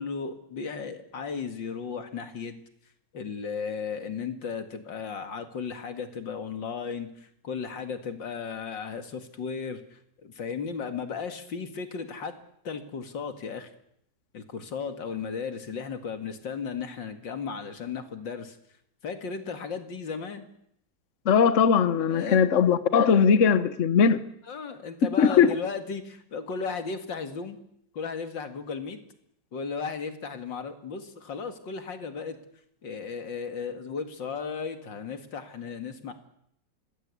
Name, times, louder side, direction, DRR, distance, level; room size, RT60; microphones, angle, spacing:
voice 1, 0.0-2.6 3.1-12.4 12.6-13.7 14.3-18.6 19.0-20.5 22.0-22.4 24.1-24.2 24.4-27.6 27.9-29.0 29.5-32.4 32.8-36.1, left 5 dB, 90° left, 2.8 m, -35 dB
voice 2, 21.3-24.2 25.2-25.5, left 6 dB, 45° left, 1.4 m, -20 dB
26.0 x 20.0 x 8.4 m
omnidirectional pair, 1.9 m